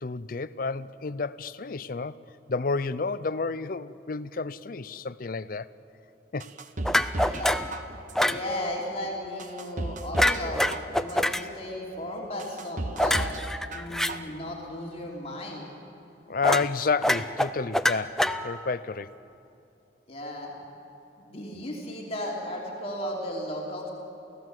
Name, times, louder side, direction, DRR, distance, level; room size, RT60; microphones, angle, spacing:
voice 1, 0.0-2.2 2.5-5.7 6.3-6.5 16.3-19.1, left 4 dB, 50° left, 0.5 m, -30 dB
sound 1, 6.4-7.4 7.7-8.3 8.8-8.9 9.4-10.4 10.7-11.3 11.8-11.9 12.4-13.4 13.7-14.3 14.7-14.8, right 2 dB, 45° right, 1.1 m, -34 dB
sound 2, 6.8-7.7 8.2-8.4 10.2-11.4 13.0-14.1 16.4-16.7 17.0-18.7, left 1 dB, 5° left, 0.5 m, -25 dB
voice 2, 7.2-10.7 11.0-13.3 13.7-15.7 20.1-20.5 21.2-23.9, left 1 dB, 35° left, 3.0 m, -35 dB
29.0 x 16.0 x 7.7 m
head